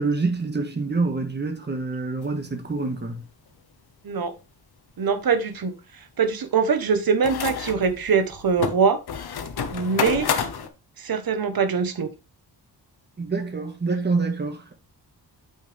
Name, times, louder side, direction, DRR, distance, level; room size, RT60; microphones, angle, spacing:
voice 1, 0.0-3.2 13.2-14.7, right 3 dB, 25° right, 1.8 m, -26 dB
sound 1, 2.2-2.3 2.7-2.8 7.2-10.7, left 7 dB, 65° left, 1.1 m, -29 dB
voice 2, 5.0-5.7 6.2-9.0 9.7-10.3 11.0-12.1, right 5 dB, 55° right, 1.4 m, -23 dB
8.7 x 5.6 x 3.5 m
wide cardioid pair, 160°, 42 cm